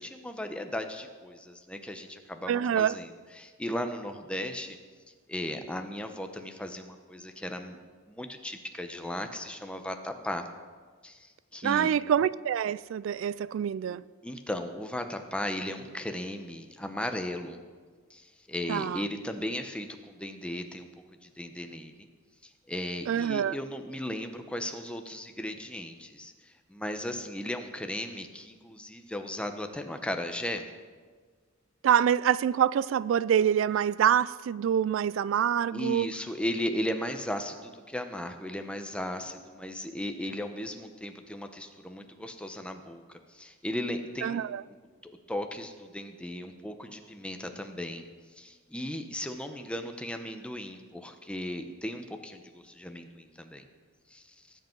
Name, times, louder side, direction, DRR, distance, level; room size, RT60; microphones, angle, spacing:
voice 1, 0.0-3.1 3.4-4.8 5.3-7.8 8.1-10.4 11.0-11.9 14.2-17.6 18.1-20.9 21.2-22.1 22.7-26.3 26.7-30.7 35.7-44.4 45.3-48.0 48.4-53.6 54.1-54.2, left 1 dB, 5° left, 0.8 m, -36 dB
voice 2, 2.5-3.0 11.6-14.0 18.7-19.0 23.1-23.6 31.8-36.1 44.2-44.6, right 9 dB, 75° right, 0.3 m, -26 dB
19.0 x 8.0 x 4.6 m
head